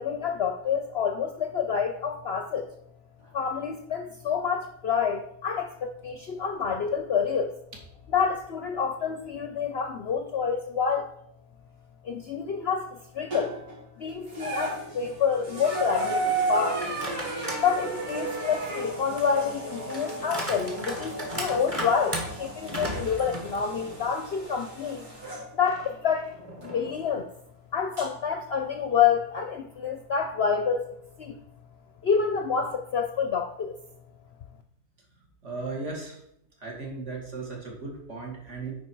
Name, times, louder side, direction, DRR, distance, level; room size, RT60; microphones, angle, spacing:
voice 1, 0.0-2.7 3.3-7.6 8.1-11.1 12.0-13.6 14.0-16.9 17.6-25.1 25.5-26.3 26.6-27.3 27.7-30.9 31.2-31.4 32.0-33.8, left 6 dB, 60° left, 6 dB, 0.7 m, -28 dB
sound 1, 13.3-13.8 14.3-25.5 26.6-26.7 28.0-28.1, right 2 dB, 85° right, 3.5 m, -33 dB
sound 2, 16.8-17.7 18.1-24.2 24.6-24.7 25.6-27.1, equal, 25° right, 1.7 m, -37 dB
voice 2, 35.4-36.2 36.6-38.7, right 3 dB, 50° right, -1 dB, 2.2 m, -36 dB
9.6 x 4.5 x 4.6 m, 0.75 s
omnidirectional pair, 1.6 m